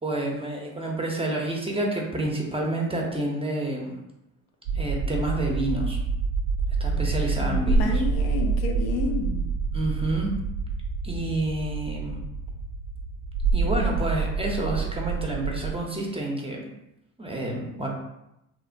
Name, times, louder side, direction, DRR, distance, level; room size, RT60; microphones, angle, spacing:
voice 1, 0.0-4.0 4.7-6.0 6.8-8.0 9.7-10.3 11.0-12.2 13.5-16.6 17.2-17.9, right 1 dB, 15° right, -1 dB, 0.6 m, -29 dB
sound 1, 4.6-15.8, right 4 dB, 75° right, 0.5 m, -27 dB
voice 2, 7.4-9.5, left 4 dB, 75° left, 2 dB, 0.6 m, -30 dB
2.9 x 2.0 x 2.5 m, 0.86 s
supercardioid pair, 70°, 40 cm